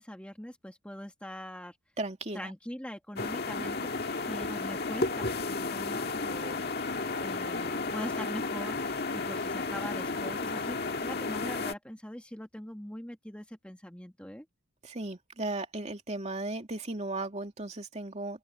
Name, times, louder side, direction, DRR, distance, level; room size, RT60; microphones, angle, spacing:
voice 1, 0.0-1.8 2.3-3.8 4.3-6.6 7.1-14.4, equal, 5° left, 1.6 m, -42 dB
voice 2, 2.0-2.5 3.6-3.7 14.8-18.4, right 2 dB, 30° right, 2.8 m, -36 dB
sound 1, 3.2-11.7, left 3 dB, 50° left, 1.8 m, -33 dB
open air
head